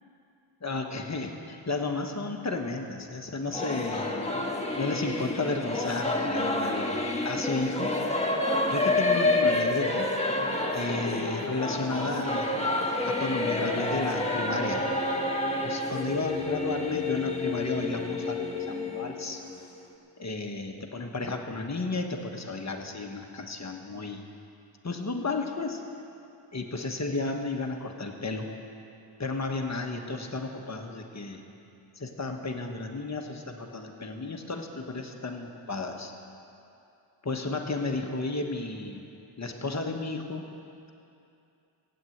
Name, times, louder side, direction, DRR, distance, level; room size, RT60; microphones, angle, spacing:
voice 1, 0.6-4.1 4.8-7.9 8.7-10.1 10.7-12.5 13.0-14.9 15.6-19.4 20.2-24.2 24.8-25.8 26.5-28.5 29.2-31.4 32.0-36.1 37.2-39.0 39.4-40.4, left 3 dB, 35° left, 3 dB, 1.3 m, -33 dB
Singing / Musical instrument, 3.5-19.8, left 2 dB, 15° left, 1.3 m, -29 dB
16.0 x 9.0 x 7.9 m, 2.7 s
wide cardioid pair, 125°, 49 cm